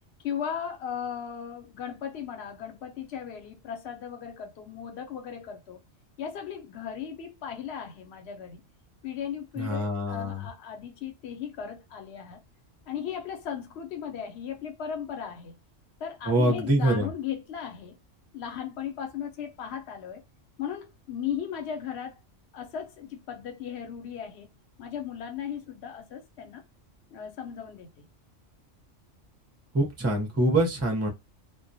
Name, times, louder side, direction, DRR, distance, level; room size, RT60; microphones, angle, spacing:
voice 1, 0.2-5.8 6.2-8.6 9.0-12.4 12.9-15.6 16.0-18.0 18.3-20.2 20.6-22.2 22.5-24.5 24.8-26.6 27.1-28.1, left 8 dB, 60° left, 0.9 m, -36 dB
voice 2, 9.6-10.5 16.3-17.1 29.7-31.1, right 1 dB, 20° right, 0.4 m, -25 dB
2.2 x 2.2 x 2.6 m
omnidirectional pair, 1.3 m